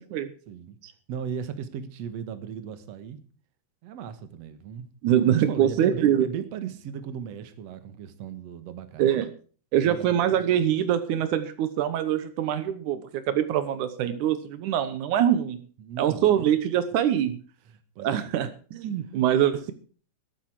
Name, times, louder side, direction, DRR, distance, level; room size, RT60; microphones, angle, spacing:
voice 1, 0.5-0.8 1.1-3.2 3.8-4.9 5.3-9.3 9.8-10.4 15.8-16.4 17.7-18.4, right 7 dB, 60° right, 2.5 m, -37 dB
voice 2, 5.0-6.3 9.0-9.3 9.7-15.6 16.0-17.4 18.0-19.7, right 10 dB, 80° right, 2.5 m, -24 dB
13.5 x 13.0 x 4.8 m
omnidirectional pair, 3.4 m